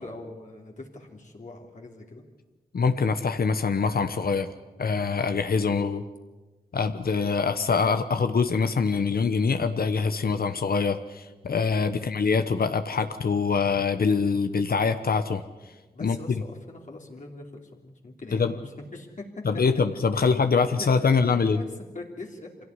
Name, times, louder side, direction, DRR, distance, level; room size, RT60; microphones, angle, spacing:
voice 1, 0.0-2.2 5.9-6.0 11.9-12.2 15.9-19.4 20.1-21.7 21.9-22.5, left 2 dB, 55° left, 0 dB, 3.1 m, -42 dB
voice 2, 2.7-4.5 4.8-6.0 6.7-15.4 16.0-16.2 18.3-18.5 19.4-21.6, left 5 dB, 75° left, 9 dB, 1.1 m, -24 dB
25.5 x 17.0 x 9.7 m, 1.2 s
wide cardioid pair, 110°, 16 cm